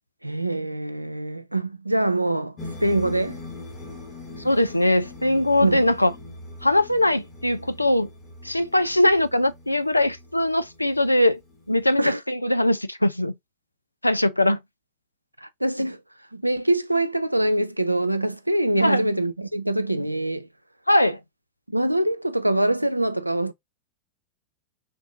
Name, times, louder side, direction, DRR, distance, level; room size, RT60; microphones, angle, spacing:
voice 1, 0.2-3.4 5.6-5.8 12.0-12.2 15.4-16.0 16.3-20.5 21.7-23.5, right 1 dB, 90° right, 0.3 m, -24 dB
sound 1, 2.6-12.1, left 2 dB, 25° left, 1.4 m, -42 dB
voice 2, 4.4-6.1 6.6-8.1 8.4-11.4 11.7-13.3 14.0-14.6 18.8-19.0 20.9-21.2, left 1 dB, 85° left, 0.3 m, -21 dB
3.4 x 2.6 x 3.8 m
figure-of-eight pair, 90°, 0 cm